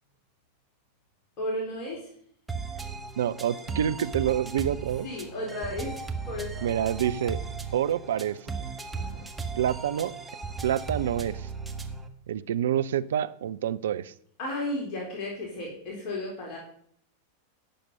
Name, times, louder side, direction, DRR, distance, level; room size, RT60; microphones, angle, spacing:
voice 1, 1.4-2.1 5.0-6.7 8.9-9.3 14.4-16.6, left 1 dB, 40° left, -2 dB, 3.8 m, -34 dB
sound 1, 2.5-12.1, right 5 dB, 10° right, 1.5 m, -36 dB
voice 2, 3.2-5.1 6.6-7.4 7.7-8.4 9.6-10.1 10.6-11.5 12.3-14.1, right 10 dB, 60° right, 13 dB, 0.6 m, -27 dB
17.0 x 6.9 x 5.4 m, 0.64 s
figure-of-eight pair, 90°, 0 cm